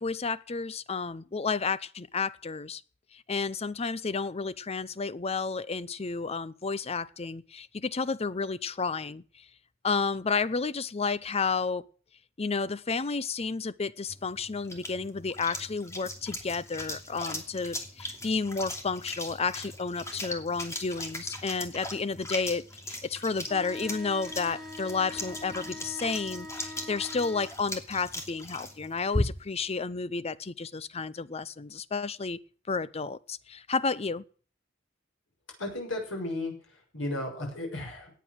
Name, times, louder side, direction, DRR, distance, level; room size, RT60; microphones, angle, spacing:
voice 1, 0.0-2.8 3.1-9.4 9.8-11.9 12.4-32.4 32.7-34.2, left 4 dB, 30° left, 0.6 m, -31 dB
sound 1, 14.1-29.6, left 1 dB, 15° left, 2.7 m, -38 dB
sound 2, 23.4-27.5, left 1 dB, ahead, 5.2 m, -43 dB
voice 2, 35.6-36.5 36.9-38.1, left 1 dB, 90° left, 6.7 m, -34 dB
18.0 x 9.2 x 6.4 m
head